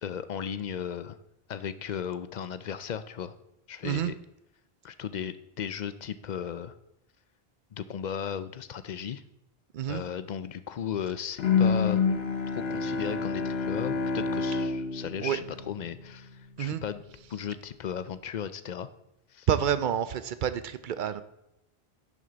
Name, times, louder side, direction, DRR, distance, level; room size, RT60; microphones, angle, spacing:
voice 1, 0.0-1.2 1.5-3.3 3.7-4.2 4.8-6.7 7.7-9.2 9.9-12.0 12.6-17.0 17.3-18.9 19.3-19.5, left 8 dB, 55° left, 13 dB, 0.6 m, -35 dB
Bowed string instrument, 11.4-16.5, left 5 dB, 75° left, 1.2 m, -28 dB
voice 2, 19.5-21.2, right 9 dB, 60° right, 13 dB, 0.6 m, -28 dB
10.5 x 6.4 x 3.9 m, 0.83 s
omnidirectional pair, 1.0 m